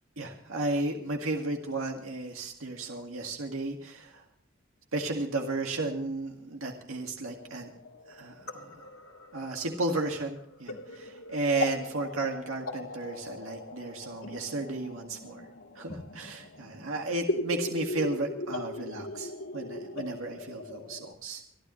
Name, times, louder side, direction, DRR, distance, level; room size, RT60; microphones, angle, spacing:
voice 1, 0.2-4.2 4.9-7.7 8.1-8.7 9.3-15.5 15.8-21.4, right 2 dB, 80° right, 2 dB, 2.0 m, -33 dB
sound 1, 7.3-21.1, left 2 dB, 80° left, 1.9 m, -39 dB
25.5 x 12.5 x 3.1 m, 0.66 s
head